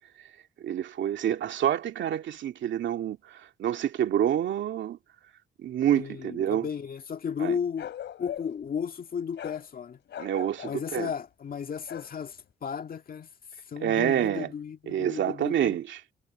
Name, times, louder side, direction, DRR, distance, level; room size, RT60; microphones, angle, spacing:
voice 1, 0.6-5.0 5.6-6.7 7.4-7.6 10.2-11.1 13.8-14.5 14.9-16.0, right 10 dB, 70° right, 2.3 m, -27 dB
voice 2, 5.9-7.9 8.2-10.0 10.6-13.3 13.7-15.8, left 7 dB, 45° left, 1.9 m, -34 dB
Bark, 7.8-8.7 9.4-9.6 10.1-10.8 11.9-12.1, left 10 dB, 65° left, 4.1 m, -40 dB
cardioid pair, 90°, 20 cm